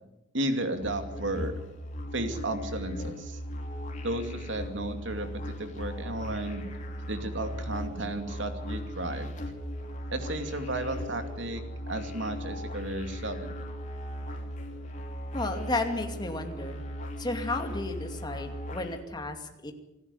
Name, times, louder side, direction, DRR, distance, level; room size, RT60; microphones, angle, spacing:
voice 1, 0.3-1.5 2.1-3.4 4.0-6.7 7.1-9.3 10.1-13.5, right 1 dB, 75° right, 7 dB, 2.5 m, -33 dB
sound 1, 0.8-19.0, equal, 40° left, 3.2 m, -38 dB
voice 2, 15.3-16.8 17.2-19.7, left 2 dB, 20° left, 5 dB, 2.5 m, -33 dB
26.5 x 12.0 x 9.8 m, 0.94 s
head